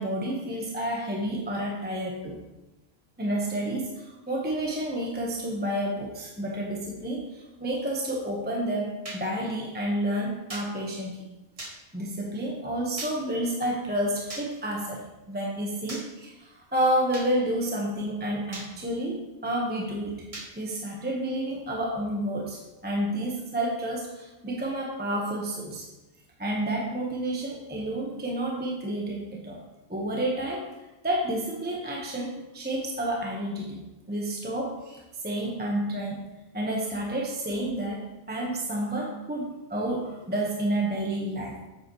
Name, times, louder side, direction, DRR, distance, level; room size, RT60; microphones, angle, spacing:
voice 1, 0.0-2.4 3.2-11.2 11.9-20.2 20.6-25.9 26.4-29.6 29.9-30.7 31.0-33.8 34.1-36.2 36.5-41.5, right 1 dB, 10° right, -2 dB, 1.1 m, -30 dB
sound 1, 9.0-9.2 10.5-10.7 11.6-11.7 13.0-13.1 14.3-14.5 15.9-16.0 17.1-17.3 18.5-18.7 20.3-20.5, right 2 dB, 25° right, 1.5 m, -38 dB
9.3 x 7.9 x 3.1 m, 0.99 s
omnidirectional pair, 1.5 m